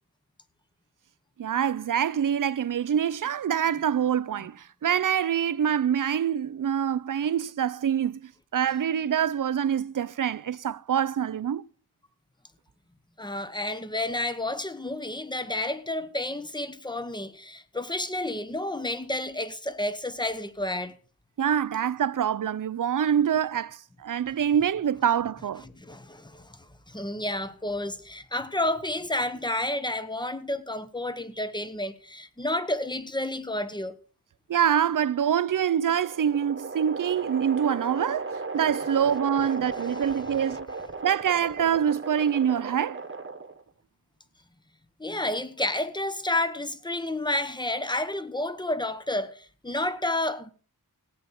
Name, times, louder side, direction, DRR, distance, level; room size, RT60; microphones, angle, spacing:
voice 1, 1.4-11.6 21.4-25.7 34.5-40.7 41.0-43.0, right 9 dB, 55° right, 0.6 m, -25 dB
voice 2, 13.2-21.0 25.6-33.9 39.7-40.2 45.0-50.5, left 1 dB, 10° left, 1.0 m, -30 dB
sound 1, 35.4-43.7, right 3 dB, 30° right, 1.3 m, -36 dB
17.5 x 8.6 x 4.2 m
wide cardioid pair, 95°, 37 cm